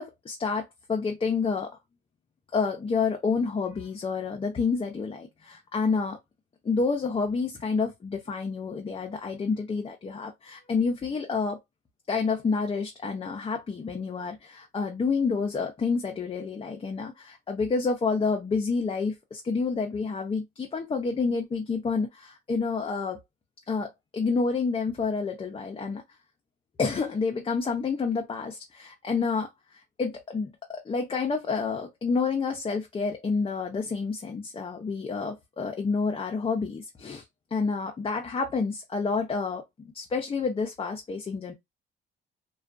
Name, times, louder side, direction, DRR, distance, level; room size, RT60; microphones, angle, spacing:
voice 1, 0.0-1.7 2.5-6.2 6.6-11.6 12.1-23.2 23.7-26.0 26.8-37.2 37.5-39.6 39.9-41.5, left 4 dB, 30° left, 0.5 m, -29 dB
2.4 x 2.2 x 2.4 m
cardioid pair, 90°, 20 cm